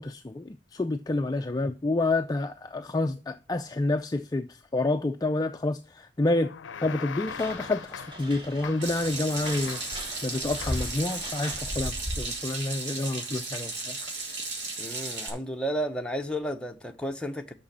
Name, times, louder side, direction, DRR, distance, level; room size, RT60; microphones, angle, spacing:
voice 1, 0.0-6.5 6.8-14.1, left 2 dB, 20° left, 0.4 m, -29 dB
sound 1, 6.4-8.3 8.6-9.1 9.5-10.1 10.6-11.0, left 7 dB, 90° left, 0.5 m, -40 dB
sound 2, 7.3-12.5, equal, 25° right, 1.9 m, -38 dB
Water tap faucet / Sink (filling or washing), 8.8-15.3, right 3 dB, 70° right, 2.7 m, -35 dB
voice 2, 14.8-17.5, equal, 5° left, 0.9 m, -32 dB
6.2 x 6.2 x 7.3 m
head